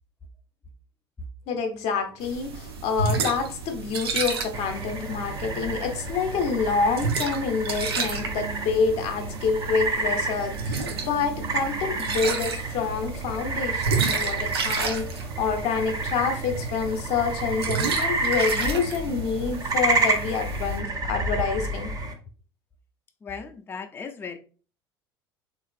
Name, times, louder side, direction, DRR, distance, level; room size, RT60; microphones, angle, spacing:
voice 1, 1.5-21.9, left 5 dB, 55° left, 5 dB, 0.7 m, -27 dB
sound 1, 2.2-20.8, right 4 dB, 85° right, 0.4 m, -32 dB
sound 2, 4.5-22.1, right 3 dB, 30° right, 0.6 m, -30 dB
voice 2, 23.2-24.4, left 5 dB, 15° left, 5 dB, 0.4 m, -37 dB
3.1 x 2.4 x 2.4 m, 0.39 s
hypercardioid pair, 70°, 13 cm